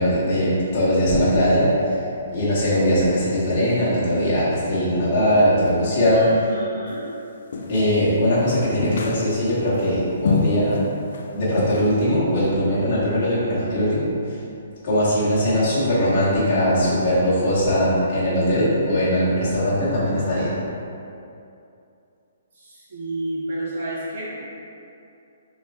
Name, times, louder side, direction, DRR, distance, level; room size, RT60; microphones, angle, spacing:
voice 1, 0.0-2.0 2.3-6.2 7.7-10.8 11.3-14.4 14.8-20.6, equal, 25° left, -12 dB, 1.1 m, -20 dB
voice 2, 6.1-7.1 22.6-24.3, right 1 dB, 50° right, -8 dB, 1.2 m, -30 dB
sound 1, 7.5-8.1 8.8-9.6 10.2-10.8 11.1-11.3 11.6-11.9, left 4 dB, 50° left, 0.4 m, -25 dB
4.4 x 3.1 x 3.4 m, 2.7 s
hypercardioid pair, 180°, 0 cm